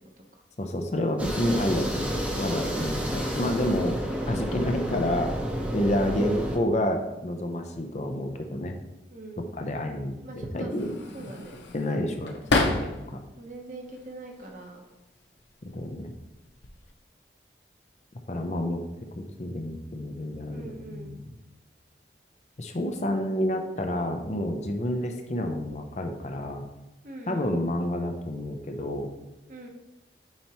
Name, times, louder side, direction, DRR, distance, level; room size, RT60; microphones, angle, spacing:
voice 1, 0.6-4.0 4.3-5.4 5.7-8.7 9.4-10.9 11.7-13.2 15.7-16.2 18.3-18.8 19.2-21.3 22.6-26.7 27.3-29.1, left 1 dB, 40° left, 5 dB, 0.6 m, -29 dB
sound 1, 1.2-6.6, equal, 10° right, 0.8 m, -30 dB
voice 2, 6.1-6.5 9.1-9.5 10.2-10.7 11.1-11.5 13.4-14.8 20.5-21.1 23.1-23.3 27.0-27.5 29.5-29.7, right 2 dB, 45° right, 2 dB, 0.9 m, -40 dB
sound 2, 10.8-13.2 13.7-14.5 15.5-15.8 16.1-16.9, left 3 dB, 80° left, 0.8 m, -30 dB
8.7 x 4.3 x 3.0 m, 1.0 s
head